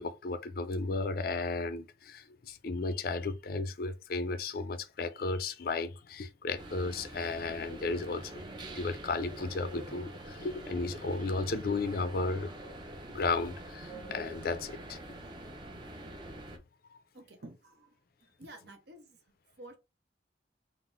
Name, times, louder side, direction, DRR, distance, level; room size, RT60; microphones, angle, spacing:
voice 1, 0.0-8.4 8.7-12.5 13.1-15.0 16.9-17.0, left 3 dB, 55° left, 0.4 m, -34 dB
sound 1, 6.6-16.6, right 1 dB, 25° right, 0.6 m, -45 dB
voice 2, 17.1-18.0 18.2-19.2 19.6-19.8, right 1 dB, 60° right, 0.9 m, -51 dB
3.9 x 2.0 x 4.3 m
head